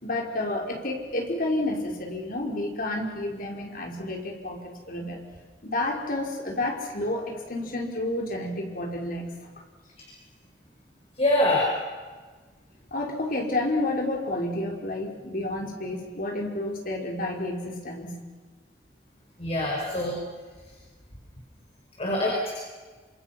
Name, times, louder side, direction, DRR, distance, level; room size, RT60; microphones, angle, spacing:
voice 1, 0.0-5.2 5.6-9.3 12.9-18.2, left 1 dB, 55° left, 1 dB, 5.0 m, -30 dB
voice 2, 11.2-11.7 19.4-20.2 22.0-22.5, left 1 dB, 35° left, -2 dB, 5.4 m, -24 dB
28.0 x 26.5 x 6.0 m, 1.4 s
head